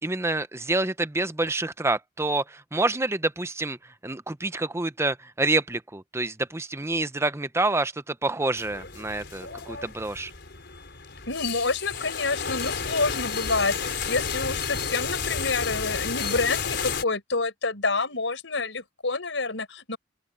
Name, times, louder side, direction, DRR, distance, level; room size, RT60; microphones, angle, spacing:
voice 1, 0.0-10.3, right 2 dB, 15° right, 0.8 m, -27 dB
sound 1, 8.6-17.0, left 6 dB, 65° left, 4.8 m, -32 dB
voice 2, 11.3-20.0, left 3 dB, 80° left, 4.6 m, -28 dB
open air
head